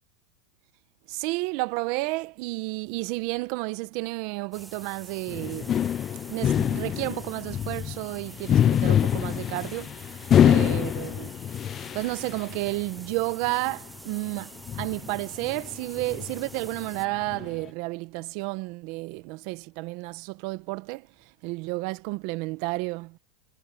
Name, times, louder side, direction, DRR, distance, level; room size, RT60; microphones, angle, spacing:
voice 1, 1.1-5.8 6.3-10.0 10.4-11.3 11.9-23.2, right 23 dB, 55° right, 1.1 m, -31 dB
sound 1, 4.5-17.1, right 2 dB, 10° right, 2.4 m, -47 dB
sound 2, 5.3-13.1 13.4-13.7 14.7-17.7, left 9 dB, 30° left, 0.4 m, -25 dB
supercardioid pair, 125°, 0 cm